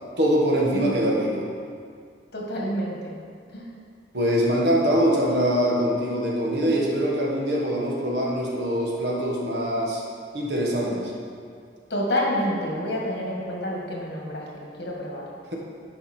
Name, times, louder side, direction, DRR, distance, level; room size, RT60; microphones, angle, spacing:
voice 1, 0.2-1.5 4.1-10.0 10.3-11.1, equal, 65° right, -2 dB, 1.6 m, -23 dB
voice 2, 2.3-3.1 3.5-3.7 11.9-15.3, equal, 65° left, -3 dB, 2.0 m, -28 dB
11.0 x 5.3 x 4.5 m, 2.2 s
head